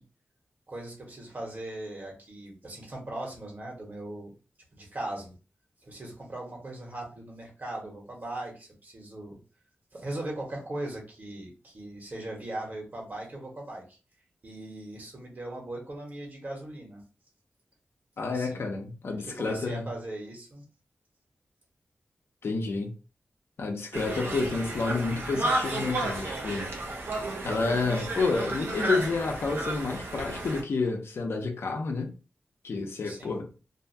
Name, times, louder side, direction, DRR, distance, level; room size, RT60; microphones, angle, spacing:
voice 1, 0.7-4.3 4.7-5.3 5.8-9.4 9.9-14.0 14.4-17.0 18.2-18.7 19.0-20.6 33.0-33.4, right 1 dB, 45° right, 1.3 m, -39 dB
voice 2, 18.2-19.9 22.4-22.9 23.6-26.7 27.4-32.1 32.6-33.5, left 3 dB, 75° left, 0.7 m, -29 dB
Conversation, 23.9-30.6, right 2 dB, 60° right, 0.7 m, -32 dB
2.7 x 2.3 x 2.7 m
wide cardioid pair, 80°, 4 cm